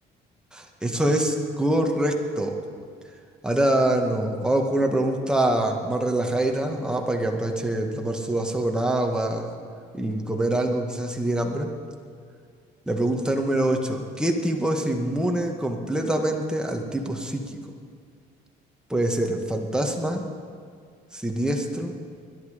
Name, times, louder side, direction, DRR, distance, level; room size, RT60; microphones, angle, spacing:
voice 1, 0.5-2.5 3.4-9.5 9.9-11.7 12.9-17.6 18.9-20.2 21.1-21.9, right 1 dB, 5° right, 2 dB, 1.7 m, -25 dB
21.5 x 11.0 x 5.2 m, 2.1 s
cardioid pair, 110°, 17 cm